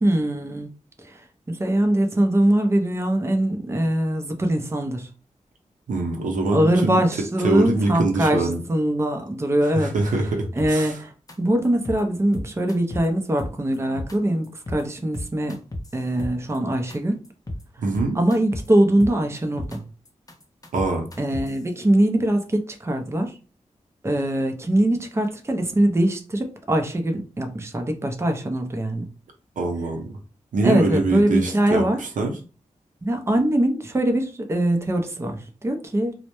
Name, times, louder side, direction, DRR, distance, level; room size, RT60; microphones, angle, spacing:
voice 1, 0.0-0.7 1.0-1.2 1.5-5.1 6.5-9.9 10.5-11.1 11.4-15.6 15.9-17.2 18.1-19.8 21.2-23.3 24.0-29.1 30.6-32.0 33.0-36.2, right 1 dB, 20° right, 5 dB, 0.5 m, -22 dB
voice 2, 5.9-7.0 7.4-8.6 9.8-11.0 17.8-18.2 20.7-21.1 29.6-30.1 30.5-32.3, right 3 dB, 80° right, 2 dB, 0.6 m, -24 dB
sound 1, 10.6-11.0 11.3-11.4 11.6-12.0 12.3-13.1 13.4-14.2 14.4-14.8 15.1-16.6 16.9-17.0 17.2-17.6 17.9-18.7 19.0-19.8 20.1-21.6, left 1 dB, 30° left, 0.6 m, -33 dB
2.1 x 2.1 x 2.9 m, 0.35 s
cardioid pair, 55°, 13 cm